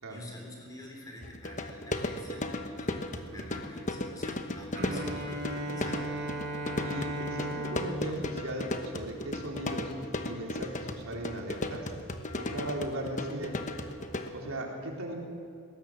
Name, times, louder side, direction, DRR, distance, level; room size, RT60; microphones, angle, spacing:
voice 1, 0.1-6.0, left 1 dB, 15° left, 0 dB, 3.7 m, -48 dB
sound 1, 1.2-14.3, left 1 dB, 35° left, 1.2 m, -36 dB
voice 2, 3.3-3.6 6.8-9.9 10.2-11.9 12.4-13.5 14.3-15.1, right 1 dB, 85° right, 0 dB, 3.9 m, -38 dB
Bowed string instrument, 4.7-9.6, right 1 dB, 50° right, 2.8 m, -37 dB
20.5 x 17.5 x 7.6 m, 2.4 s
head